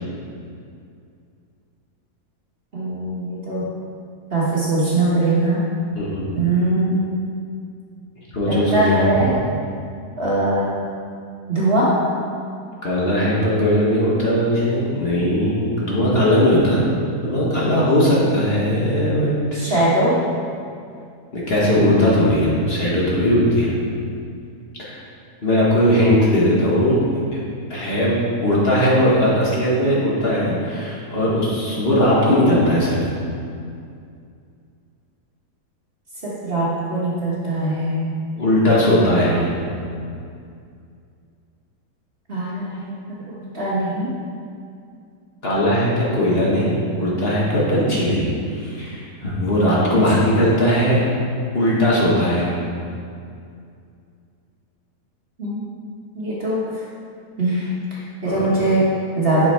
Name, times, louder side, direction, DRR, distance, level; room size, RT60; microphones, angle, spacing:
voice 1, 2.7-3.7 4.3-5.6 6.3-7.0 8.4-9.4 10.2-10.7 11.5-12.0 19.5-20.2 36.2-38.1 42.3-43.0 43.3-44.1 49.9-50.0 55.4-55.7 56.1-56.8 57.4-59.5, right 1 dB, 40° right, -6 dB, 1.3 m, -21 dB
voice 2, 5.9-6.3 8.3-9.0 12.8-16.9 17.2-19.4 21.3-23.7 24.8-25.0 25.4-27.0 27.3-27.4 27.7-33.0 38.3-39.5 45.4-51.1 51.5-52.5 58.2-58.4, equal, 40° left, -6 dB, 1.4 m, -18 dB
6.2 x 5.9 x 4.3 m, 2.4 s
omnidirectional pair, 1.7 m